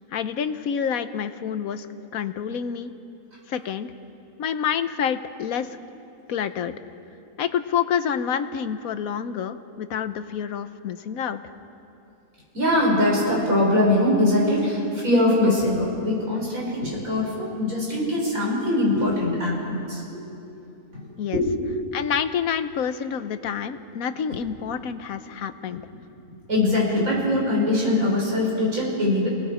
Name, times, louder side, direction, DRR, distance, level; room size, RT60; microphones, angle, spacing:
voice 1, 0.1-1.9 2.1-2.9 3.5-3.9 4.4-5.8 6.3-6.7 7.4-11.4 21.2-21.4 21.9-25.8, left 8 dB, 75° left, 11 dB, 1.3 m, -28 dB
voice 2, 12.5-20.0 21.3-21.5 25.7-25.8 26.5-29.3, left 1 dB, 65° right, -4 dB, 6.5 m, -22 dB
29.5 x 19.0 x 5.1 m, 2.9 s
omnidirectional pair, 1.5 m